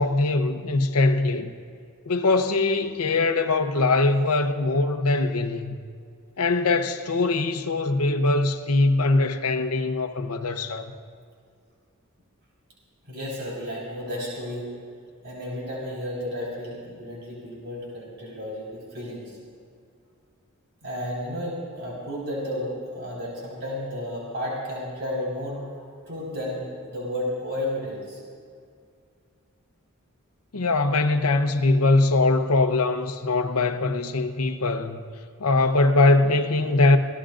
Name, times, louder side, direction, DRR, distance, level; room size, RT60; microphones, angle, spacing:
voice 1, 0.0-1.5 2.1-5.8 6.4-10.9 30.5-35.0 35.4-37.0, left 2 dB, 80° left, 0.9 m, -22 dB
voice 2, 13.1-14.7 15.2-19.3 20.8-25.6 26.0-28.2, left 1 dB, 50° right, 4.7 m, -32 dB
25.5 x 17.5 x 2.5 m
head